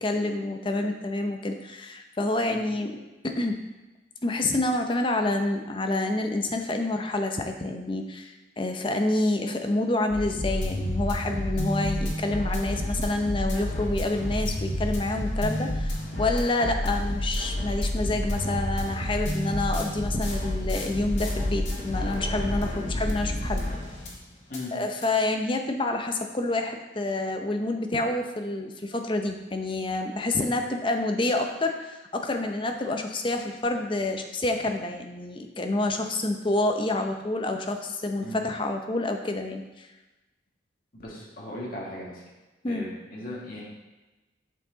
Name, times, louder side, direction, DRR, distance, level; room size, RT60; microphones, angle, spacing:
voice 1, 0.0-3.6 4.2-23.9 24.7-39.9 42.6-42.9, left 2 dB, 25° left, 5 dB, 0.6 m, -28 dB
sound 1, 10.1-24.2 24.5-24.6 25.0-25.1, left 1 dB, 80° left, 1.9 m, -29 dB
voice 2, 40.9-42.2 42.7-43.6, left 1 dB, 50° left, -4 dB, 1.8 m, -37 dB
7.6 x 5.8 x 3.9 m, 1.1 s
head